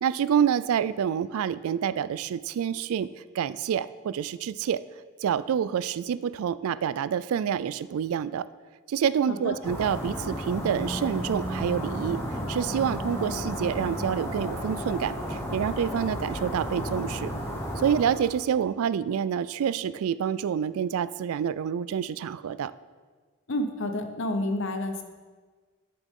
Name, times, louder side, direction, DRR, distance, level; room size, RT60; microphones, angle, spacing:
voice 1, 0.0-3.1 3.3-4.8 5.2-8.5 8.9-12.2 12.5-17.3 17.8-22.7, right 8 dB, 75° right, 16 dB, 0.3 m, -27 dB
sound 1, 9.6-18.4, equal, 10° left, 1.1 m, -33 dB
voice 2, 23.5-25.0, left 1 dB, 60° left, 6 dB, 0.8 m, -29 dB
11.0 x 6.8 x 3.7 m, 1.4 s
head